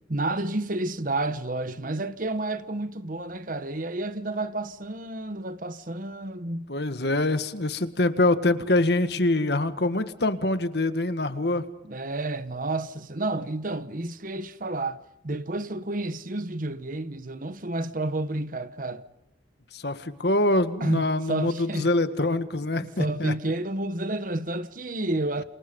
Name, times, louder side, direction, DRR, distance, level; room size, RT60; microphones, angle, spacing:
voice 1, 0.1-6.7 11.8-15.0 15.2-19.0 20.8-21.9 22.8-25.4, right 2 dB, 45° right, 1.3 m, -30 dB
voice 2, 6.7-11.7 19.7-23.3, left 2 dB, 60° left, 1.7 m, -25 dB
28.5 x 28.0 x 5.4 m
head